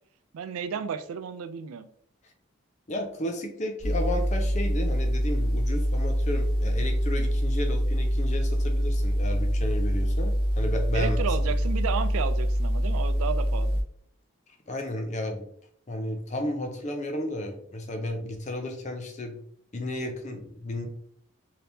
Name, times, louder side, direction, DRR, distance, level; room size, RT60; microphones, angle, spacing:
voice 1, 0.3-1.9 10.9-13.8, right 6 dB, 90° right, 11 dB, 0.4 m, -32 dB
voice 2, 2.9-11.2 14.7-15.5 15.9-19.4 19.7-20.9, left 1 dB, 35° left, 4 dB, 0.6 m, -33 dB
sound 1, 3.8-13.8, equal, 20° right, 1.0 m, -25 dB
3.4 x 2.8 x 2.7 m, 0.63 s
head